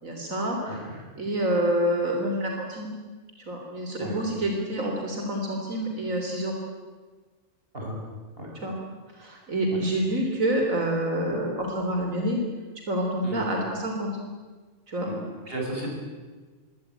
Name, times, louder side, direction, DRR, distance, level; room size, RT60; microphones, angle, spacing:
voice 1, 0.0-0.8 1.2-2.9 3.5-6.5 8.6-8.7 9.1-12.4 12.9-14.1 14.9-15.1, right 1 dB, 85° right, 1 dB, 4.0 m, -27 dB
voice 2, 0.7-1.0 4.0-4.2 7.7-8.0 8.4-8.5 13.2-13.5 15.0-15.2 15.5-15.9, right 1 dB, 45° right, -1 dB, 8.1 m, -34 dB
26.0 x 22.5 x 9.0 m, 1.4 s
omnidirectional pair, 1.4 m